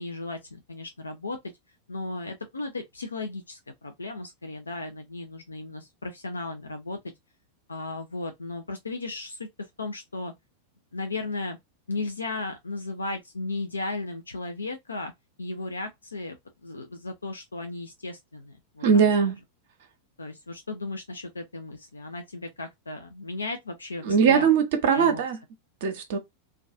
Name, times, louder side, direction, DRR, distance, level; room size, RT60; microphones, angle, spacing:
voice 1, 0.0-1.4 1.9-7.0 7.7-10.3 10.9-11.6 11.9-15.1 15.4-16.4 16.6-19.0 20.2-24.5 24.9-25.2, left 2 dB, 75° left, 0.4 m, -35 dB
voice 2, 18.8-19.4 24.0-25.4 25.8-26.2, right 6 dB, 55° right, 0.5 m, -21 dB
2.3 x 2.3 x 2.4 m
figure-of-eight pair, 90°, 0 cm